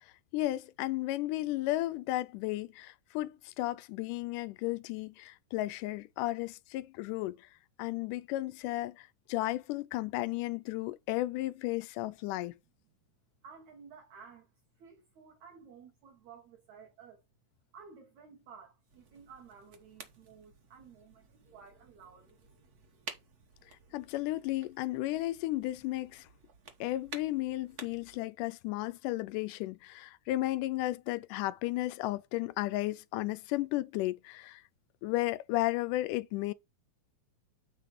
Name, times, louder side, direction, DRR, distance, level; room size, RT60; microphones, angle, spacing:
voice 1, 0.3-7.5 7.8-12.5 23.9-26.3 26.8-34.6 35.0-36.5, left 17 dB, 80° left, 2.0 m, -34 dB
voice 2, 13.4-14.5 14.8-17.2 17.7-22.4, right 6 dB, 65° right, 2.6 m, -54 dB
sound 1, 18.9-28.2, right 5 dB, 80° right, 0.8 m, -52 dB
8.3 x 4.0 x 4.9 m
omnidirectional pair, 3.9 m